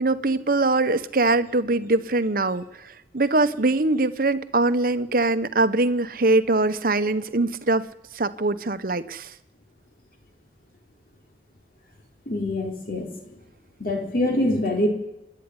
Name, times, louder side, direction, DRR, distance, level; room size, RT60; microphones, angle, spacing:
voice 1, 0.0-7.8 8.1-9.3, right 2 dB, 50° right, 13 dB, 1.0 m, -22 dB
voice 2, 12.3-13.1 13.8-14.9, left 1 dB, 50° left, 3 dB, 3.7 m, -24 dB
27.0 x 11.0 x 9.8 m, 0.93 s
head